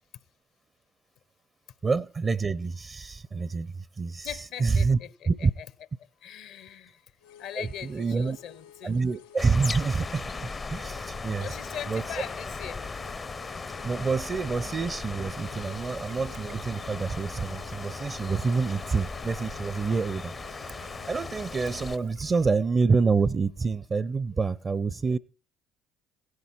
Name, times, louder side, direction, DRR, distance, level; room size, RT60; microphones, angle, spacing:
voice 1, 1.8-5.0 5.3-5.5 7.6-8.4 8.8-11.5 11.9-12.2 13.8-25.2, right 4 dB, 30° right, 0.5 m, -27 dB
voice 2, 4.2-5.1 5.4-5.7 6.2-7.0 7.4-9.0 11.4-12.8 15.7-15.9, left 9 dB, 65° left, 0.8 m, -40 dB
sound 1, 7.2-22.1, left 9 dB, 85° left, 2.6 m, -52 dB
sound 2, 9.4-22.0, left 4 dB, 30° left, 0.5 m, -38 dB
Trickle dribble, 15.3-22.5, right 11 dB, 70° right, 0.8 m, -52 dB
16.5 x 9.6 x 4.4 m
hypercardioid pair, 55°, 0 cm